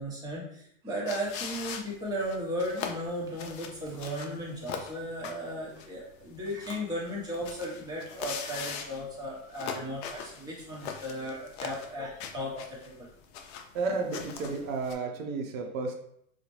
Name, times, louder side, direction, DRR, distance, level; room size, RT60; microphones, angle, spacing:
voice 1, 0.0-13.1, equal, 10° right, -4 dB, 0.8 m, -36 dB
sound 1, 1.1-14.9, left 6 dB, 55° left, 0.5 m, -41 dB
voice 2, 13.7-15.9, right 3 dB, 80° right, 3 dB, 0.8 m, -32 dB
4.0 x 2.1 x 3.0 m, 0.71 s
supercardioid pair, 145°, 40 cm